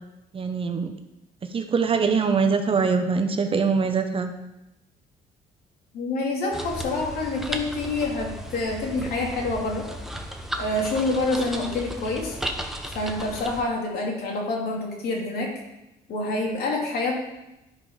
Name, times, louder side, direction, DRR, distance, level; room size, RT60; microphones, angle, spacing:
voice 1, 0.3-0.9 1.4-4.3, right 5 dB, 30° right, 7 dB, 0.8 m, -23 dB
voice 2, 5.9-9.8 10.6-12.4 12.9-15.5 16.1-17.1, left 2 dB, 65° left, -1 dB, 2.6 m, -27 dB
sound 1, 6.5-13.6, right 1 dB, ahead, 1.0 m, -35 dB
10.5 x 4.8 x 5.5 m, 0.94 s
cardioid pair, 110°, 17 cm